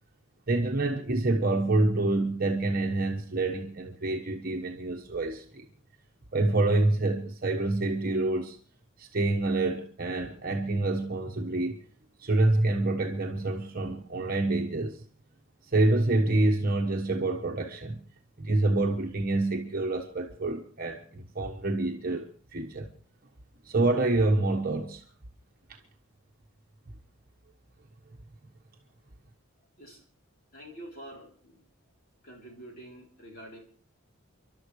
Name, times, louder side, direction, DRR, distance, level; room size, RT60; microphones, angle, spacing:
voice 1, 0.5-5.7 6.3-8.6 9.0-11.8 12.2-15.0 15.7-18.0 18.4-22.9 23.6-25.0 25.7-25.8, right 2 dB, 40° right, 1.2 m, -27 dB
voice 2, 30.5-31.6 32.2-33.6, right 1 dB, 40° left, 3.4 m, -46 dB
30.0 x 12.0 x 3.2 m
head